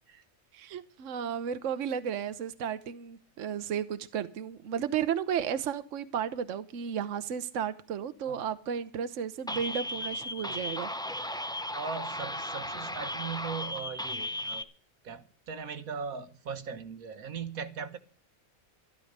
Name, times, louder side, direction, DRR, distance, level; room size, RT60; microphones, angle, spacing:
voice 1, 0.5-10.9, right 8 dB, 65° right, 1.2 m, -33 dB
sound 1, 9.5-14.6, left 1 dB, 5° left, 0.7 m, -36 dB
voice 2, 11.7-14.7 15.0-18.0, right 6 dB, 85° right, 1.7 m, -39 dB
12.5 x 12.5 x 6.6 m
omnidirectional pair, 1.5 m